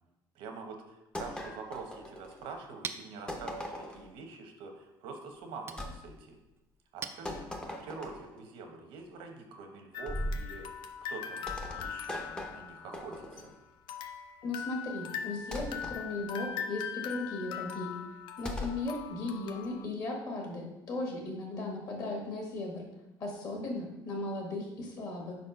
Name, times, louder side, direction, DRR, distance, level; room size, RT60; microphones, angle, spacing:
voice 1, 0.3-6.4 6.9-7.4 7.8-11.4 11.7-13.5, right 4 dB, 80° right, 5 dB, 1.0 m, -45 dB
sound 1, 1.2-2.6 3.3-4.1 5.8-6.0 7.3-8.4 10.1-10.5 11.5-13.6 15.5-16.0 18.5-18.8, left 1 dB, 10° left, 0.6 m, -39 dB
Chink clink, 2.2-7.9, right 6 dB, 30° right, 0.4 m, -48 dB
sound 2, 9.9-13.5 13.9-19.9, left 8 dB, 60° left, 0.5 m, -41 dB
voice 2, 14.4-17.9 18.4-22.8 23.2-25.4, left 2 dB, 45° left, 0 dB, 1.5 m, -37 dB
4.8 x 4.2 x 5.7 m, 0.98 s
cardioid pair, 155°, 9 cm